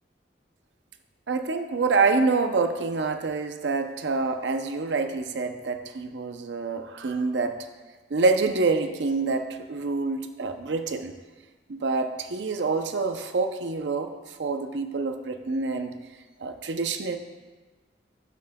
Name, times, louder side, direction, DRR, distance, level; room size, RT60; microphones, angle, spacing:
voice 1, 1.3-7.6 8.1-11.1 11.7-14.1 14.4-15.9 16.4-17.2, right 3 dB, 75° right, 7 dB, 0.6 m, -26 dB
12.0 x 7.0 x 2.2 m, 1.3 s
head